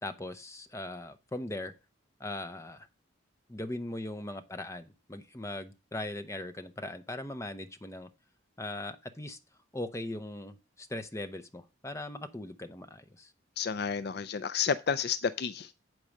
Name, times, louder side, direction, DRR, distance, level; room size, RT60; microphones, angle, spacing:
voice 1, 0.0-1.7 2.2-2.9 3.5-8.1 8.6-9.4 9.7-13.3, left 1 dB, 15° left, 0.8 m, -39 dB
voice 2, 13.6-15.8, left 6 dB, 55° left, 0.4 m, -31 dB
8.5 x 4.7 x 6.4 m
head